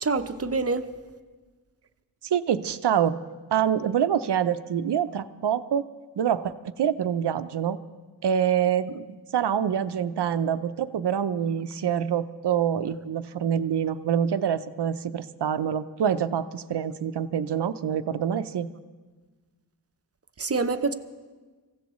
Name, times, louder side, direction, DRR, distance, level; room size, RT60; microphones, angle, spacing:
voice 1, 0.0-0.9 20.4-20.9, right 4 dB, 35° right, 10 dB, 0.8 m, -26 dB
voice 2, 2.2-3.2 3.5-5.9 6.2-7.8 8.2-9.0 9.3-18.7, right 8 dB, 70° right, 12 dB, 0.7 m, -26 dB
25.5 x 15.5 x 3.1 m, 1.4 s
wide cardioid pair, 80°, 43 cm